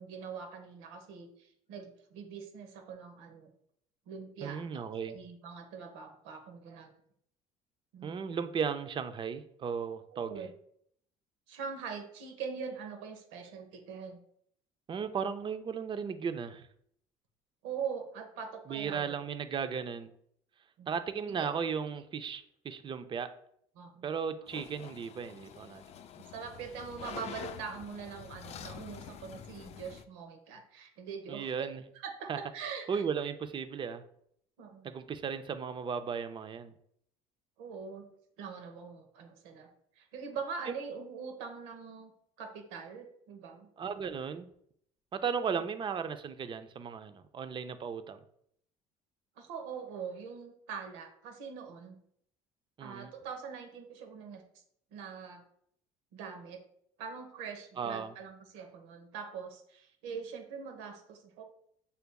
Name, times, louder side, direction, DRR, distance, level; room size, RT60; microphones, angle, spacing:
voice 1, 0.0-3.5 4.1-4.8 5.1-6.9 7.9-8.1 10.1-10.5 11.5-14.2 17.6-19.2 20.8-20.9 21.2-21.5 23.7-24.1 26.1-31.7 32.0-33.0 34.6-34.9 37.6-38.1 38.4-39.7 40.0-42.1 42.4-43.7 45.5-45.6 49.4-52.0 52.8-54.4 54.9-55.4 56.1-56.6 57.0-61.4, right 6 dB, 85° right, 1.0 m, -43 dB
voice 2, 4.4-5.2 8.0-10.5 14.9-16.7 18.7-20.1 20.9-23.3 24.0-25.8 31.3-31.8 32.3-32.4 32.9-34.0 34.8-36.7 40.7-40.8 43.8-44.5 45.1-48.2 52.8-53.1 57.8-58.1, right 6 dB, 35° right, 0.5 m, -36 dB
sound 1, 24.5-30.0, left 9 dB, 50° left, 0.4 m, -47 dB
6.8 x 3.3 x 2.3 m
supercardioid pair, 90°, 14 cm